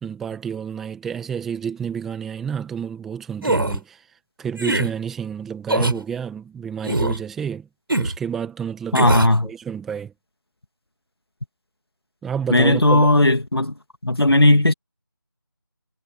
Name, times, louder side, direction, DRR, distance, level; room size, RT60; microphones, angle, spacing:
voice 1, 0.0-4.0 4.4-7.7 8.0-9.1 9.4-10.1 12.2-13.1, right 7 dB, ahead, 1.7 m, -30 dB
sound 1, 3.4-3.8 4.6-4.9 5.7-6.0 6.8-7.2 7.9-8.2 8.9-9.3, right 2 dB, 65° right, 5.4 m, -21 dB
voice 2, 8.9-9.5 12.5-13.7 14.0-14.7, left 1 dB, 85° left, 2.3 m, -16 dB
figure-of-eight pair, 170°, 13 cm